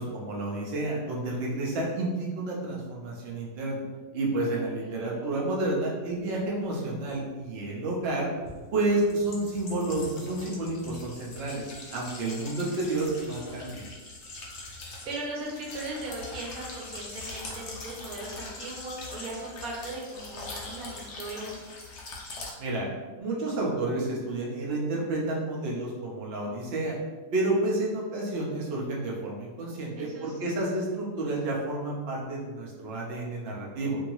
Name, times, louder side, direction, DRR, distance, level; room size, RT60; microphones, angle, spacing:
voice 1, 0.0-3.8 4.1-8.3 8.7-11.6 11.9-13.8 22.6-22.9 23.2-27.0 27.3-34.0, right 2 dB, 80° right, -4 dB, 0.5 m, -30 dB
voice 2, 4.8-5.2 12.5-12.9 14.5-14.8 15.0-21.6 30.0-30.6, right 2 dB, 65° right, -3 dB, 1.0 m, -39 dB
sound 1, 7.1-7.2 8.4-22.5, left 2 dB, 90° left, 0.6 m, -42 dB
2.8 x 2.6 x 2.9 m, 1.3 s
omnidirectional pair, 1.9 m